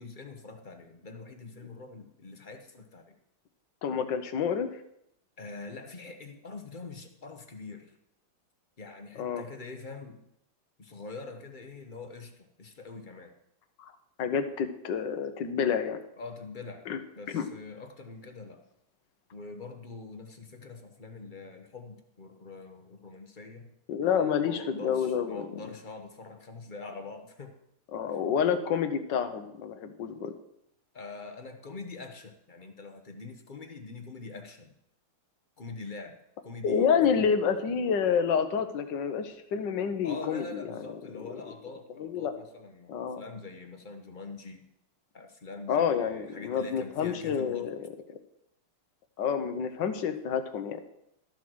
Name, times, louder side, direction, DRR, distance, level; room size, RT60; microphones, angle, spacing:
voice 1, 0.0-3.2 5.4-7.9 8.8-10.2 10.8-13.3 16.2-16.8 17.1-18.6 19.3-23.7 24.0-27.5 30.9-34.7 35.6-36.1 36.4-37.3 40.0-44.7 45.1-47.7, left 3 dB, 35° left, 5 dB, 0.9 m, -44 dB
voice 2, 3.8-4.7 9.2-9.4 13.8-13.9 14.2-16.0 16.9-17.0 17.3-17.5 23.9-25.4 27.9-30.3 36.6-40.6 42.0-42.3 42.9-43.2 45.7-47.8 49.2-50.8, left 7 dB, 65° left, 9 dB, 1.5 m, -28 dB
13.0 x 7.3 x 6.2 m, 0.79 s
omnidirectional pair, 2.3 m